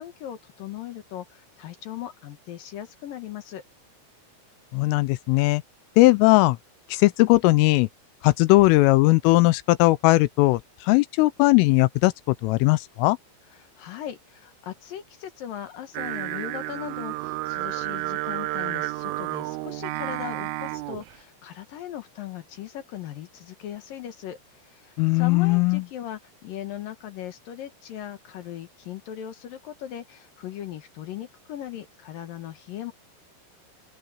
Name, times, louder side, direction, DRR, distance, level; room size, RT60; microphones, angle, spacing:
voice 1, 0.0-3.6 13.6-32.9, left 11 dB, 65° left, 2.3 m, -38 dB
voice 2, 4.7-5.6 6.0-6.6 6.9-7.9 8.2-13.2 25.0-25.8, left 21 dB, 85° left, 3.2 m, -19 dB
Singing, 16.0-21.1, right 19 dB, 85° right, 3.2 m, -31 dB
open air
omnidirectional pair, 5.8 m